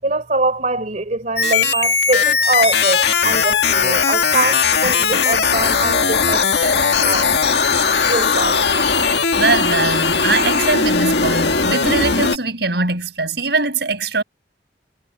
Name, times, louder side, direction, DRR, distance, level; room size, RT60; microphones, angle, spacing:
voice 1, 0.0-7.3 8.0-8.6, right 2 dB, 45° right, 3.5 m, -23 dB
sound 1, 1.4-12.4, left 5 dB, 65° left, 2.0 m, -18 dB
voice 2, 4.8-5.2 9.4-14.2, right 3 dB, 65° right, 8.0 m, -21 dB
head